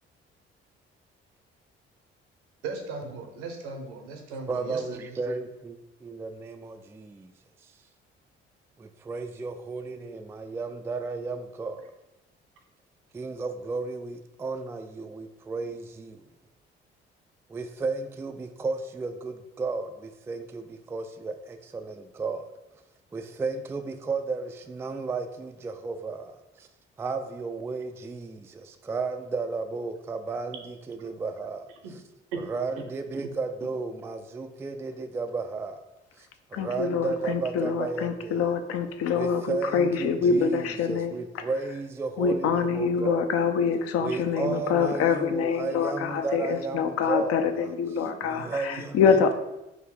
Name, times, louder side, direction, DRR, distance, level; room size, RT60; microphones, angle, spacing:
voice 1, 2.6-5.2 31.8-31.9 32.3-32.4 32.8-32.9 38.4-38.5, right 4 dB, 70° right, 4 dB, 0.8 m, -37 dB
voice 2, 4.5-7.3 8.8-11.9 13.1-16.2 17.5-22.5 23.1-26.7 27.0-31.7 32.5-35.8 36.2-38.5 39.1-43.3 44.0-47.7 48.2-49.0, right 4 dB, 10° right, 7 dB, 0.3 m, -33 dB
voice 3, 36.5-41.2 42.2-49.4, left 6 dB, 50° left, 7 dB, 0.5 m, -25 dB
3.8 x 2.7 x 4.7 m, 0.93 s
figure-of-eight pair, 45°, 30 cm